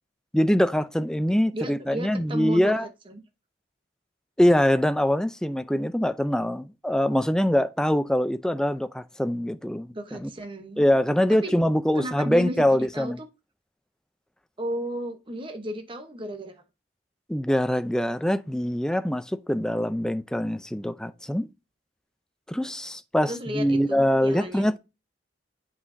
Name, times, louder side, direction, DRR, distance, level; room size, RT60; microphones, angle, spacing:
voice 1, 0.3-2.9 4.4-10.3 10.8-13.2 17.3-21.5 22.5-24.8, equal, 5° left, 0.4 m, -23 dB
voice 2, 1.5-2.7 3.1-3.2 9.9-10.8 11.3-11.6 11.9-13.3 14.6-16.6 23.2-24.7, right 1 dB, 25° right, 0.9 m, -34 dB
8.5 x 5.7 x 2.6 m
head